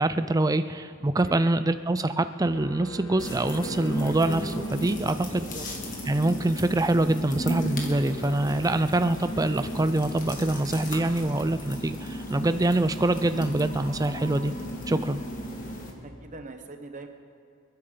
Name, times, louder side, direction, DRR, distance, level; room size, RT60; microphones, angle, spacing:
voice 1, 0.0-5.5 6.1-14.5 14.9-15.2, right 2 dB, 15° right, 11 dB, 0.4 m, -25 dB
sound 1, 2.5-5.5, right 2 dB, 85° left, 1.1 m, -43 dB
sound 2, 3.2-15.9, equal, 35° left, 1.9 m, -35 dB
voice 2, 5.3-5.6 16.0-17.1, right 2 dB, 35° right, 5 dB, 1.0 m, -42 dB
28.5 x 9.9 x 3.9 m, 2.5 s
head